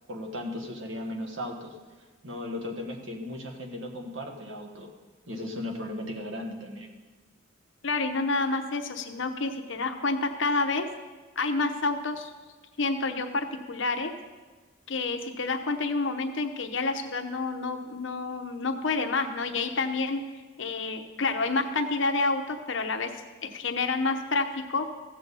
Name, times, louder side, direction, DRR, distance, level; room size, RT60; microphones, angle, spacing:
voice 1, 0.1-1.8 2.2-4.9 5.3-6.9, left 1 dB, 75° right, 1 dB, 1.4 m, -36 dB
voice 2, 7.8-10.9 11.4-12.3 12.8-14.1 14.9-20.2 20.6-23.1 23.4-24.9, left 3 dB, 70° left, 6 dB, 0.9 m, -28 dB
15.0 x 7.7 x 4.0 m, 1.3 s
head